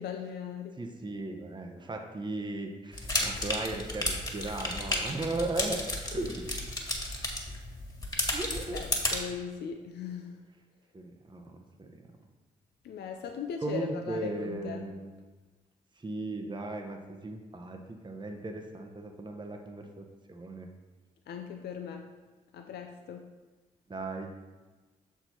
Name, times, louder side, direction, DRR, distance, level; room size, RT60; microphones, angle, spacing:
voice 1, 0.0-0.8 8.2-8.4 8.7-10.4 12.8-14.9 21.3-22.1 22.5-23.3, left 7 dB, 65° left, 4 dB, 0.5 m, -39 dB
voice 2, 0.8-5.8 6.1-6.6 8.3-8.8 10.9-11.9 13.6-15.1 16.0-20.7 23.9-24.3, right 2 dB, 25° right, 3 dB, 0.9 m, -37 dB
sound 1, 2.9-9.2, left 1 dB, 20° left, 1.8 m, -33 dB
6.6 x 4.5 x 4.5 m, 1.3 s
hypercardioid pair, 40°, 18 cm